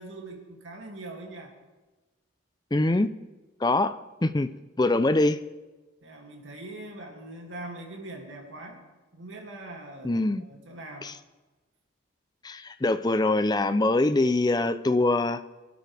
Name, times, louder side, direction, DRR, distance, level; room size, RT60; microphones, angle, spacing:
voice 1, 0.0-1.5 6.0-8.9 9.1-11.1, right 2 dB, 75° right, 1 dB, 2.5 m, -42 dB
voice 2, 2.7-3.1 3.6-3.9 4.2-4.5 4.8-5.4 10.0-10.4 11.0-11.1 12.4-15.4, left 2 dB, 20° left, 11 dB, 0.5 m, -23 dB
24.5 x 12.0 x 3.4 m, 1.2 s
head